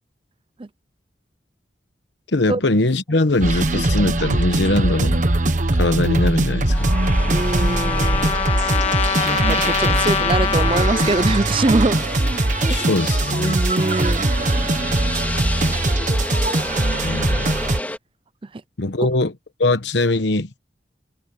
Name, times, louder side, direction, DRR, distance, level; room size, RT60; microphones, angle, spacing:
voice 1, 2.3-5.2 5.8-7.0 12.7-13.6 17.0-17.5 18.8-19.3 19.6-20.5, left 2 dB, 80° left, 1.1 m, -21 dB
sound 1, 3.4-17.8, right 2 dB, 45° right, 1.3 m, -21 dB
Trumpet, 6.7-11.4, left 8 dB, 35° left, 2.1 m, -24 dB
sound 2, 6.7-18.0, left 1 dB, 10° left, 2.5 m, -31 dB
voice 2, 7.3-8.4 9.2-12.0 12.6-12.8 13.3-14.5, right 2 dB, 30° right, 0.5 m, -23 dB
head